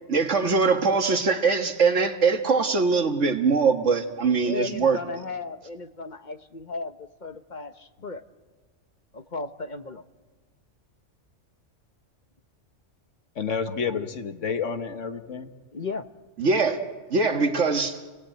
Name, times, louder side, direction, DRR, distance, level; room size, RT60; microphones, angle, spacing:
voice 1, 0.1-5.0 16.4-16.8 17.1-18.0, right 4 dB, 70° right, 6 dB, 2.0 m, -22 dB
voice 2, 4.4-8.2 9.1-10.0 13.7-14.0 15.7-16.1, left 3 dB, 40° left, 9 dB, 1.0 m, -35 dB
voice 3, 13.3-15.5, left 6 dB, 75° left, 8 dB, 1.7 m, -30 dB
29.5 x 18.5 x 9.1 m, 1.4 s
omnidirectional pair, 1.3 m